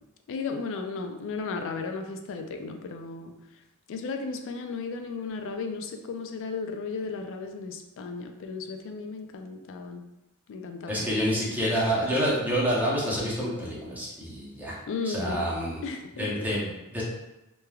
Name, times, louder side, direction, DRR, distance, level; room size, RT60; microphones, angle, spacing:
voice 1, 0.3-3.4 3.9-10.0 10.5-11.1 14.9-15.5 15.8-16.5, left 4 dB, 60° left, 5 dB, 0.3 m, -35 dB
voice 2, 10.9-14.8 15.0-15.8 16.2-17.0, equal, 10° right, -6 dB, 0.7 m, -28 dB
3.1 x 2.2 x 2.3 m, 0.95 s
head